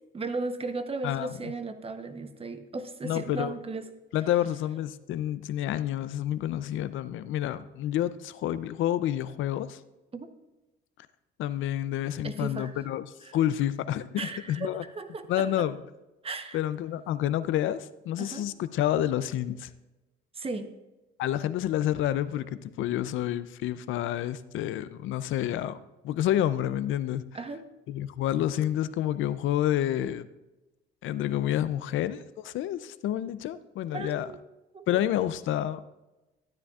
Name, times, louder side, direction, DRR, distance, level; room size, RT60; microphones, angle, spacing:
voice 1, 0.1-3.8 10.1-10.3 12.2-12.8 13.2-13.4 14.2-15.5 16.2-16.6 18.2-18.5 20.3-20.7 27.3-27.7 33.9-34.4 34.7-35.0, right 3 dB, 30° right, 9 dB, 0.9 m, -36 dB
voice 2, 3.0-3.6 4.1-9.8 11.4-13.0 13.3-14.2 14.5-14.8 15.3-15.8 16.5-19.7 21.2-25.8 26.0-27.3 27.9-30.3 31.0-34.3 34.9-35.8, left 12 dB, 80° left, 14 dB, 0.5 m, -29 dB
13.0 x 9.7 x 2.4 m, 1.1 s
cardioid pair, 90°, 20 cm